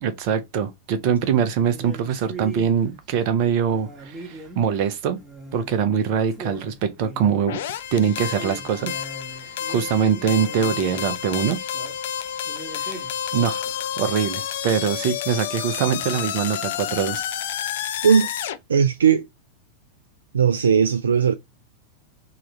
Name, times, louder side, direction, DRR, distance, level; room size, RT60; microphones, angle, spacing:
voice 1, 0.0-5.2 5.5-7.6 7.9-8.9 9.4-11.6 12.7-13.0 13.3-13.7 14.0-17.2, right 7 dB, 45° right, 0.9 m, -23 dB
sound 1, 1.7-2.8 3.7-4.8 5.2-5.8 6.0-6.1 6.3-7.6 8.3-12.0 12.4-13.8, right 1 dB, 10° right, 1.8 m, -40 dB
sound 2, 7.5-18.6, left 10 dB, 55° left, 0.5 m, -30 dB
voice 2, 18.7-19.2 20.3-21.3, right 7 dB, 70° right, 0.3 m, -17 dB
3.8 x 3.0 x 4.5 m
figure-of-eight pair, 90°, 0 cm